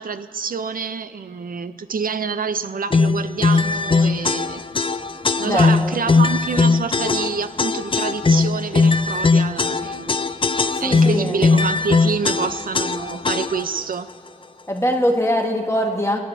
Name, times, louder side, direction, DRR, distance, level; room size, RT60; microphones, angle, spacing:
voice 1, 0.0-4.6 5.4-10.2 10.8-14.1, right 5 dB, 75° right, 12 dB, 0.6 m, -27 dB
sound 1, 2.9-13.8, left 4 dB, 35° left, 0.4 m, -19 dB
voice 2, 5.4-6.0 10.8-11.4 14.7-16.2, equal, 20° left, 1 dB, 1.4 m, -22 dB
30.0 x 10.5 x 2.7 m, 2.7 s
cardioid pair, 45°, 15 cm